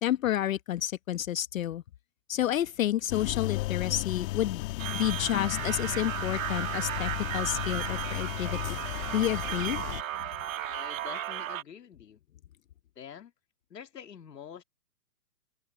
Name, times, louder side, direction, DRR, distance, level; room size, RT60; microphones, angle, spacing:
voice 1, 0.0-1.8 2.3-4.6 4.9-8.8 9.1-9.8, left 12 dB, 55° left, 1.1 m, -30 dB
sound 1, 3.1-10.0, left 19 dB, 35° left, 1.7 m, -35 dB
sound 2, 4.8-11.6, right 12 dB, 55° right, 1.6 m, -35 dB
voice 2, 10.6-12.2 13.0-13.3 13.7-14.6, left 8 dB, 80° left, 2.6 m, -46 dB
open air
hypercardioid pair, 140°, 49 cm